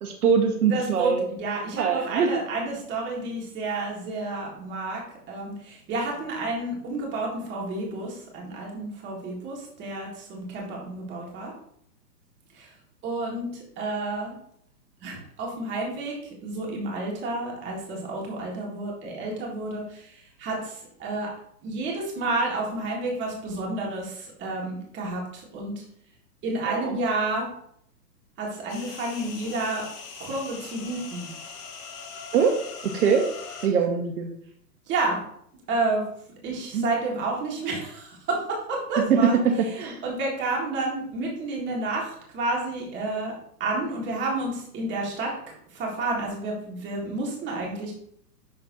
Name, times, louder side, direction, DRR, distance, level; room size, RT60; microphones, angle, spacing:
voice 1, 0.0-1.2 1.8-2.3 26.7-27.0 32.3-32.5 32.9-33.3 33.6-34.4 36.7-36.9 39.1-39.2 39.8-40.0, right 6 dB, 65° right, 3 dB, 1.2 m, -23 dB
voice 2, 0.7-11.5 12.5-12.7 13.0-14.4 15.0-16.2 16.4-21.3 21.6-25.8 26.4-27.5 28.4-29.9 30.2-31.3 34.9-35.2 35.7-36.1 36.4-43.3 43.6-45.3 45.7-47.9, right 2 dB, 20° right, -2 dB, 2.0 m, -30 dB
sound 1, 28.7-33.7, left 5 dB, 65° left, 2.7 m, -41 dB
11.0 x 3.7 x 2.8 m, 0.68 s
hypercardioid pair, 140°, 50 cm